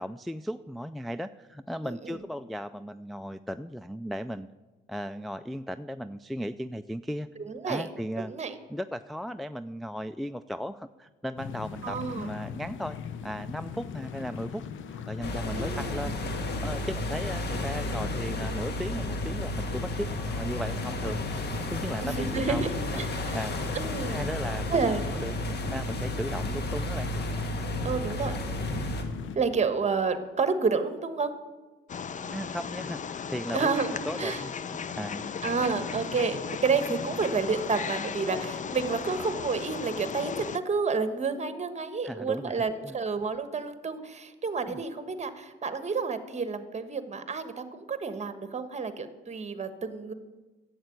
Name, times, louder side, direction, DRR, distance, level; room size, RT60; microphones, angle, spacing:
voice 1, 0.0-4.5 4.9-7.3 7.7-8.3 8.7-14.6 14.9-23.0 23.3-23.8 24.1-24.8 25.1-25.4 25.7-27.1 32.3-35.3 42.0-43.0 44.7-44.8, equal, ahead, 9 dB, 0.3 m, -36 dB
voice 2, 1.8-2.2 7.5-7.9 8.3-8.5 11.8-12.3 15.4-16.2 22.0-23.4 23.7-24.3 24.7-25.0 25.4-25.5 27.8-28.4 29.3-31.3 33.5-33.9 34.2-34.4 35.4-50.1, right 4 dB, 35° right, 10 dB, 1.3 m, -30 dB
sound 1, 11.4-29.4, left 7 dB, 75° left, 0.9 m, -40 dB
sound 2, 15.2-29.0, left 1 dB, 55° left, 1.7 m, -33 dB
Wild animals, 31.9-40.6, left 6 dB, 40° left, 0.6 m, -36 dB
11.0 x 7.9 x 9.4 m, 1.2 s
cardioid pair, 90°, 20 cm